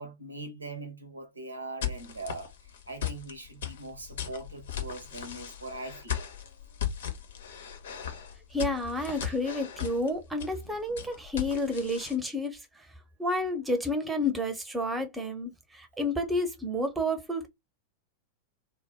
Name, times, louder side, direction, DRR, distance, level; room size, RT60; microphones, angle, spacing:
voice 1, 0.0-6.2 10.7-11.1, right 2 dB, 80° right, 0.7 m, -42 dB
sound 1, 1.8-12.2, left 9 dB, 60° left, 0.6 m, -37 dB
voice 2, 8.5-12.9 13.2-17.5, left 1 dB, 5° right, 0.7 m, -30 dB
2.2 x 2.0 x 3.5 m
figure-of-eight pair, 90°, 0 cm